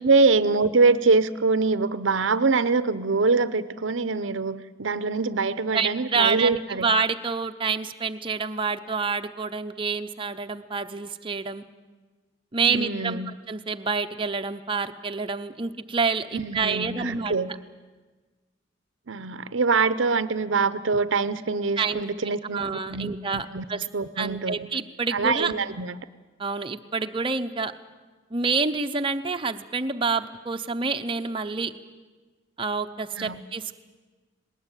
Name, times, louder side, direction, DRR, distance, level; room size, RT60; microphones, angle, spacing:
voice 1, 0.0-6.9 12.7-13.3 16.3-17.5 19.1-23.6 23.9-24.7 25.1-26.0 33.2-33.4, right 4 dB, 85° right, 14 dB, 0.8 m, -24 dB
voice 2, 5.7-11.6 12.5-13.2 13.5-17.3 21.8-22.0 22.5-23.8 24.2-25.5 26.4-27.7 28.3-31.7 32.6-33.7, right 4 dB, 25° right, 6 dB, 0.8 m, -27 dB
19.0 x 19.0 x 9.1 m, 1.3 s
head